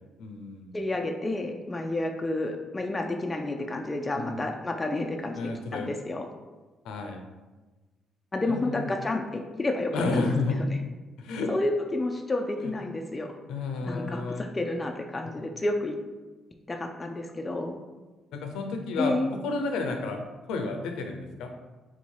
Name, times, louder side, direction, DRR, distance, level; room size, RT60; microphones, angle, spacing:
voice 1, 0.2-0.7 4.1-4.4 5.3-5.9 6.8-7.2 8.5-8.9 9.9-10.6 11.2-11.5 12.6-12.7 13.5-14.5 18.3-19.1 19.4-20.2 20.5-21.5, left 3 dB, 90° left, 4 dB, 0.6 m, -31 dB
voice 2, 0.7-6.3 8.3-10.8 11.5-13.3 13.8-15.9 16.7-17.8 19.0-19.3, left 2 dB, 20° left, 3 dB, 0.4 m, -30 dB
3.8 x 2.8 x 4.6 m, 1.2 s
cardioid pair, 90°, 0 cm